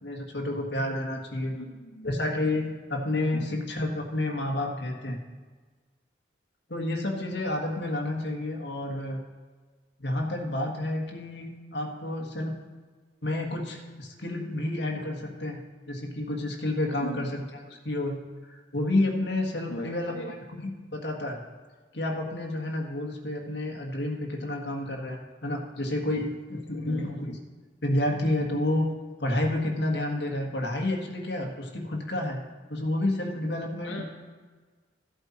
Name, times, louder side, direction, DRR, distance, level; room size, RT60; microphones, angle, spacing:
voice 1, 0.0-1.5 2.0-5.2 6.7-9.2 10.0-12.6 13.2-15.6 15.9-17.4 17.8-18.2 18.5-20.2 20.6-21.4 21.9-27.4 27.8-28.9 29.2-32.4 32.7-34.0, left 1 dB, 65° left, 0 dB, 1.7 m, -30 dB
voice 2, 1.5-2.1 3.3-3.5 17.0-17.2 19.7-20.3 26.9-27.1 33.8-34.0, left 1 dB, 90° left, 0 dB, 1.3 m, -38 dB
14.5 x 8.0 x 4.4 m, 1.4 s
head